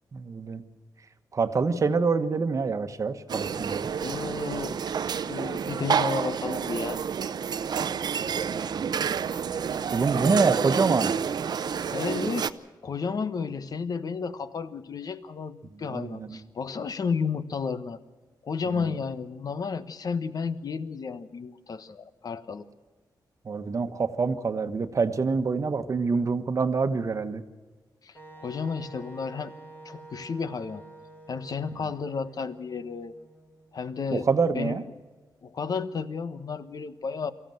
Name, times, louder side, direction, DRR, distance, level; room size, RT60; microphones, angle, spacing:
voice 1, 0.1-0.6 1.3-3.9 8.3-8.9 9.9-11.1 15.9-16.4 18.7-18.9 23.4-27.4 34.1-34.8, right 4 dB, 45° right, 9 dB, 1.2 m, -26 dB
sound 1, 3.3-12.5, right 7 dB, 65° right, 0.7 m, -29 dB
voice 2, 4.0-4.8 5.3-7.0 11.9-12.5 12.8-18.0 18.4-22.6 28.0-29.5 29.8-30.8 31.3-33.1 33.7-34.3 34.5-34.9 35.4-37.3, left 5 dB, 55° left, 12 dB, 1.1 m, -32 dB
Wind instrument woodwind instrument, 28.1-34.0, right 3 dB, 25° left, 2.8 m, -49 dB
23.5 x 15.0 x 7.8 m, 1.3 s
wide cardioid pair, 120°, 8 cm